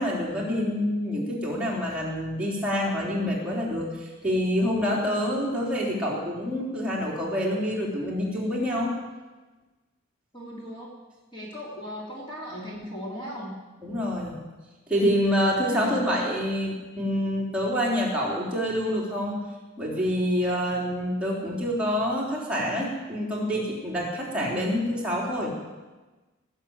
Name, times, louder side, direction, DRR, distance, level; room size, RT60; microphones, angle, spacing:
voice 1, 0.0-8.9 13.8-14.3 14.9-19.4 19.8-25.5, equal, 5° right, -5 dB, 3.5 m, -27 dB
voice 2, 10.3-10.9 11.3-13.6 15.7-16.2, equal, 25° left, -4 dB, 3.0 m, -37 dB
18.5 x 7.2 x 9.0 m, 1.2 s
head